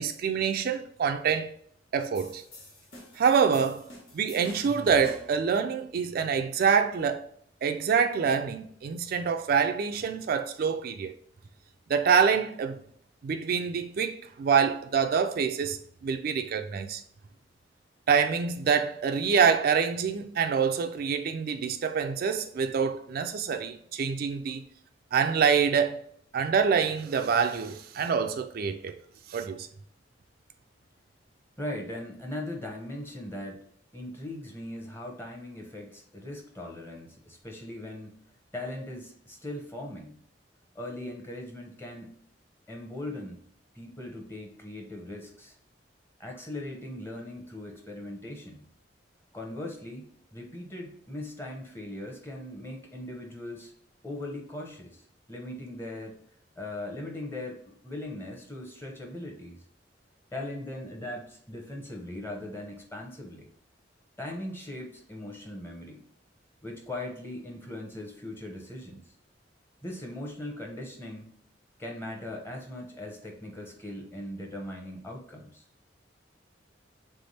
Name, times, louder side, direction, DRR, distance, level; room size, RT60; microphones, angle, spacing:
voice 1, 0.0-1.5 1.9-2.4 3.2-3.9 4.1-7.2 7.6-11.1 11.9-12.8 13.2-17.0 18.1-24.6 25.1-26.1 26.3-28.9 29.3-29.7, right 6 dB, 55° right, 0.3 m, -26 dB
sound 1, 2.1-5.4, left 1 dB, 75° left, 1.5 m, -47 dB
voice 2, 31.6-33.6 33.9-38.2 38.5-40.2 40.7-42.1 42.7-43.4 43.7-45.6 46.2-48.7 49.3-53.7 54.0-55.0 55.3-56.2 56.6-59.6 60.3-63.5 64.2-66.0 66.6-69.0 69.8-71.3 71.8-75.6, left 1 dB, 15° left, 0.9 m, -39 dB
3.5 x 3.4 x 4.1 m
head